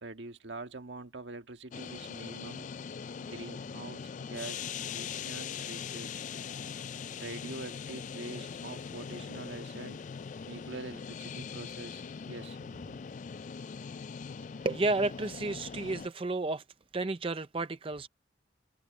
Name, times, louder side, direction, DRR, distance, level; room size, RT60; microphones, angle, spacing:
voice 1, 0.0-2.7 3.2-6.2 7.1-10.0 10.5-13.0, right 2 dB, 75° right, 1.6 m, -45 dB
sound 1, 1.7-16.1, left 6 dB, 40° left, 0.3 m, -41 dB
voice 2, 14.6-16.6 16.9-18.1, right 2 dB, 30° right, 0.5 m, -31 dB
open air
head